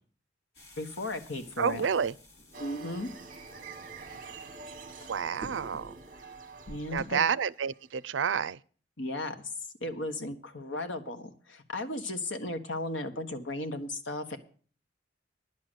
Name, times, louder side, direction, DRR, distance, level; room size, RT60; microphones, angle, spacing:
sound 1, 0.5-7.1, equal, 65° left, 3.0 m, -52 dB
voice 1, 0.8-1.9 2.6-3.1 6.7-7.2 9.0-9.3 9.8-14.4, left 2 dB, 85° left, 1.5 m, -35 dB
voice 2, 1.6-2.1 5.1-5.9 6.9-8.6, right 7 dB, 80° right, 0.5 m, -29 dB
sound 2, 2.5-8.1, right 4 dB, 45° right, 1.1 m, -47 dB
10.5 x 6.6 x 9.2 m
head